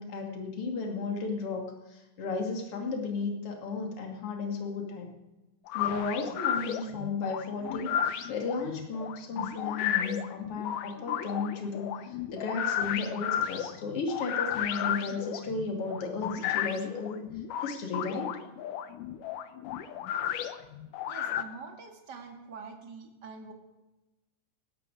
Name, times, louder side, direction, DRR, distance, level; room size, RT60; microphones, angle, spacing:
voice 1, 0.0-5.1 5.7-17.2 17.6-18.3, left 4 dB, 45° left, 1 dB, 3.2 m, -34 dB
sound 1, 5.7-21.4, left 10 dB, 75° left, 2.3 m, -33 dB
voice 2, 21.1-23.5, right 4 dB, 35° right, 4 dB, 2.1 m, -45 dB
18.5 x 13.0 x 4.9 m, 1.1 s
omnidirectional pair, 4.0 m